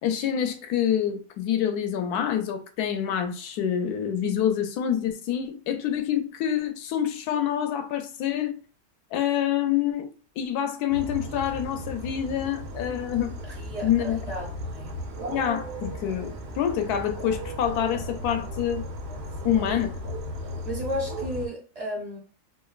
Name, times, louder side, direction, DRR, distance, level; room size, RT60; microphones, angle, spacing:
voice 1, 0.0-8.5 9.1-10.1 10.4-13.3 13.8-14.2 15.3-18.8 19.4-19.9, left 9 dB, 80° left, 1.1 m, -26 dB
sound 1, 10.9-21.5, equal, 60° right, 0.7 m, -36 dB
voice 2, 13.4-15.0 19.4-19.7 20.6-22.2, equal, 30° right, 0.9 m, -34 dB
3.0 x 2.5 x 2.4 m
omnidirectional pair, 1.7 m